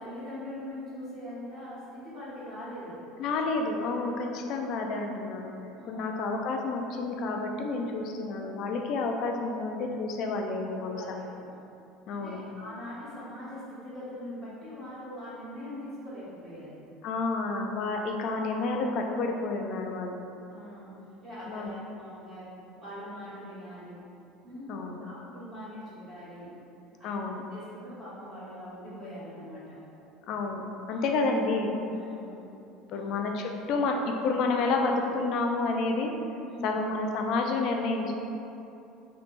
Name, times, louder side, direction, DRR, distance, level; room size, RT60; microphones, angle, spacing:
voice 1, 0.0-3.0 5.8-6.1 10.8-11.5 12.1-16.8 20.5-24.0 24.4-26.5 27.0-29.8 30.9-31.1 31.9-32.4 32.9-33.1 36.5-36.8, left 1 dB, 20° right, -15 dB, 1.1 m, -42 dB
voice 2, 3.2-5.5 5.9-11.0 12.1-12.4 17.0-20.2 21.5-21.7 24.7-25.0 27.0-27.4 30.3-31.7 32.9-36.1 36.6-38.2, left 3 dB, 45° left, 2 dB, 0.3 m, -30 dB
3.2 x 3.1 x 2.5 m, 2.8 s
cardioid pair, 165°, 0 cm